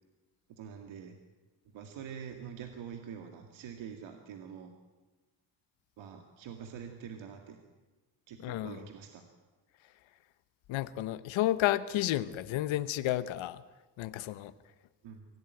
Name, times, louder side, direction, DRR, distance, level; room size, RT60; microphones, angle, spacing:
voice 1, 0.5-1.2 1.7-4.7 6.0-7.6 8.3-9.2 15.0-15.3, right 7 dB, 80° right, 4 dB, 2.2 m, -45 dB
voice 2, 8.4-8.8 10.7-13.6 14.0-14.5, left 14 dB, 80° left, 13 dB, 1.0 m, -31 dB
25.0 x 16.5 x 9.2 m, 1.2 s
cardioid pair, 165°, 46 cm